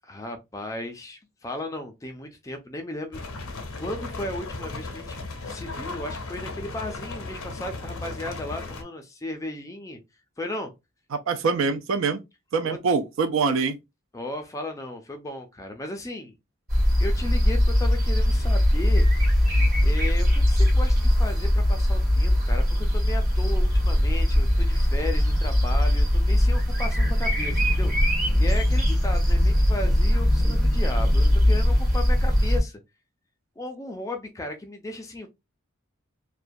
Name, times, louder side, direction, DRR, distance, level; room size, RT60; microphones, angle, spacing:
voice 1, 0.1-3.3 3.7-10.0 10.4-10.7 12.6-12.8 14.1-16.4 17.0-19.1 19.8-32.8 33.6-35.3, left 1 dB, 15° left, 0.4 m, -35 dB
sound 1, 3.1-8.8, left 3 dB, 85° left, 0.5 m, -36 dB
voice 2, 11.1-12.2 12.5-13.8, right 4 dB, 65° right, 0.4 m, -24 dB
sound 2, 16.7-32.6, left 1 dB, 40° right, 1.1 m, -21 dB
2.3 x 2.1 x 2.5 m
head